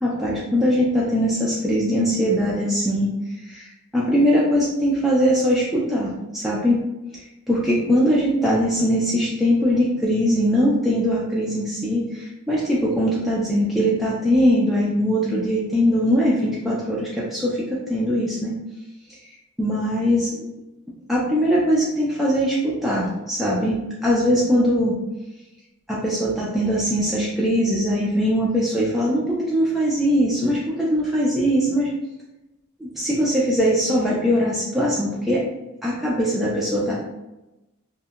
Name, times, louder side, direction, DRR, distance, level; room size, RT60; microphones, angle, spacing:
voice 1, 0.0-3.1 3.4-3.7 3.9-6.8 7.5-18.5 19.6-20.4 21.1-24.9 25.9-31.9 32.8-35.4 35.8-36.9, equal, ahead, -7 dB, 0.3 m, -21 dB
2.7 x 2.1 x 2.3 m, 0.99 s
head